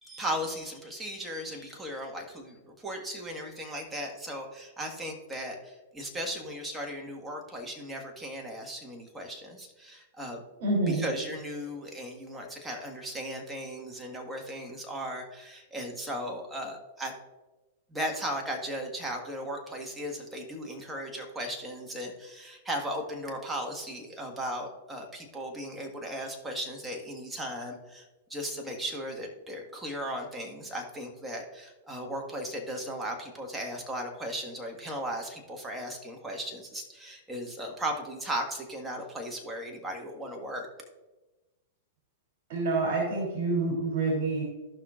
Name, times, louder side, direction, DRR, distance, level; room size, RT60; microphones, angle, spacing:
voice 1, 0.0-10.4 10.9-17.1 17.9-28.0 28.3-40.7, equal, 10° right, 1 dB, 1.6 m, -36 dB
voice 2, 10.6-11.0 42.5-44.4, right 3 dB, 55° right, -4 dB, 3.0 m, -27 dB
14.5 x 5.8 x 2.5 m, 1.2 s
hypercardioid pair, 125°, 0 cm